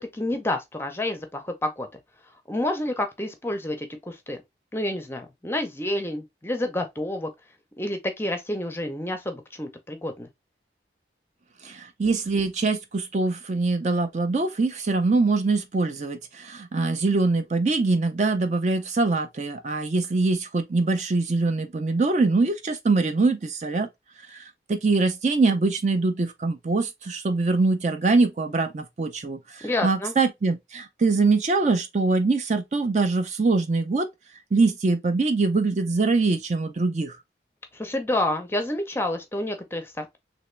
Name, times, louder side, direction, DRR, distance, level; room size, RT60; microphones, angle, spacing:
voice 1, 0.0-1.9 2.5-4.4 4.7-7.3 7.8-10.3 29.6-30.1 37.7-40.2, left 1 dB, 15° left, 0.6 m, -29 dB
voice 2, 11.6-23.9 24.3-34.1 34.5-37.2, right 3 dB, 40° right, 0.4 m, -23 dB
3.4 x 3.0 x 3.1 m
head